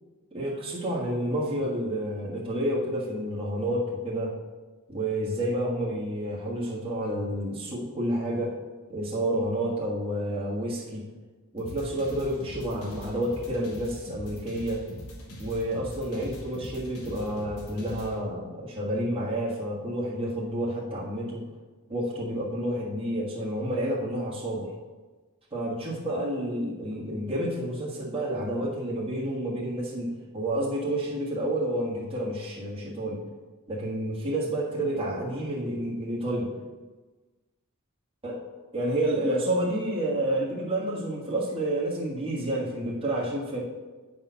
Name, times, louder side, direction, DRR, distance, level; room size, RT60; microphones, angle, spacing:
voice 1, 0.3-4.3 4.9-8.6 8.9-11.0 11.5-14.8 15.4-21.4 21.9-24.7 25.5-33.2 33.7-36.5 38.2-38.4 38.7-43.6, right 1 dB, 25° right, -5 dB, 1.4 m, -29 dB
sound 1, 11.6-18.1, equal, 85° left, 1.7 m, -42 dB
8.6 x 4.3 x 5.6 m, 1.3 s
head